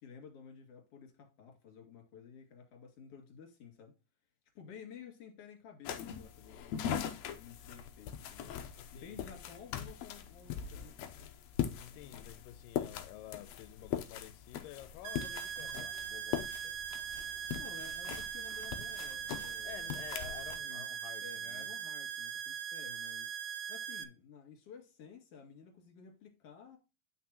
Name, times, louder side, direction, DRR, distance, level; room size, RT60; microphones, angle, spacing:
voice 1, 0.0-3.9 4.5-8.5 8.9-11.3 17.6-19.9 20.6-23.3 23.7-26.8, left 7 dB, 50° left, 3.1 m, -53 dB
sound 1, 5.9-20.6, left 9 dB, 75° left, 1.7 m, -41 dB
voice 2, 8.8-9.4 11.8-16.8 19.6-21.7, left 14 dB, 90° left, 2.2 m, -51 dB
sound 2, 15.0-24.0, right 8 dB, 80° right, 2.1 m, -41 dB
10.5 x 5.9 x 2.9 m
omnidirectional pair, 3.8 m